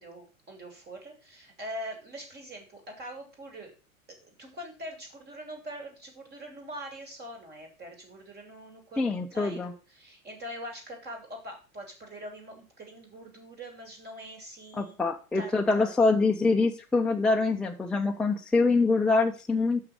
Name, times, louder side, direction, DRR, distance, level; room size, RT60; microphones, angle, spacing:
voice 1, 0.0-3.7 4.1-15.0 15.3-16.0, equal, 25° right, 3 dB, 3.1 m, -43 dB
voice 2, 9.0-9.7 14.7-19.8, left 3 dB, ahead, 2 dB, 0.5 m, -25 dB
6.4 x 5.9 x 6.5 m, 0.34 s
figure-of-eight pair, 90°, 42 cm